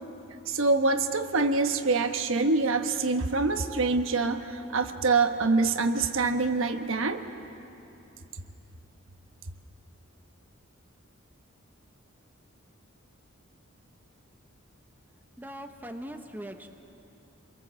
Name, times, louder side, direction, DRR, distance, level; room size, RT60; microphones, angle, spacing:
voice 1, 0.5-7.2, right 3 dB, 70° right, 7 dB, 1.2 m, -25 dB
voice 2, 15.4-16.7, equal, 10° right, 5 dB, 1.0 m, -40 dB
27.5 x 23.0 x 7.6 m, 2.9 s
head